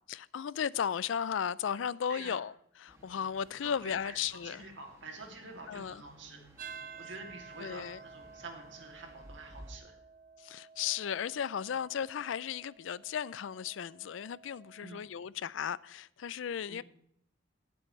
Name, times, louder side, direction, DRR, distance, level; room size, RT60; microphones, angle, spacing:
voice 1, 0.1-2.5 2.8-4.6 5.7-6.0 7.6-8.0 10.4-16.8, left 8 dB, 75° left, 0.4 m, -35 dB
voice 2, 2.1-2.4 3.6-6.4 7.0-10.0 14.8-15.1 16.7-16.8, right 3 dB, 65° right, 2.6 m, -48 dB
sound 1, 2.9-9.8, equal, 15° right, 2.2 m, -56 dB
sound 2, 6.6-15.1, right 5 dB, 45° right, 0.8 m, -52 dB
18.0 x 7.7 x 3.2 m
head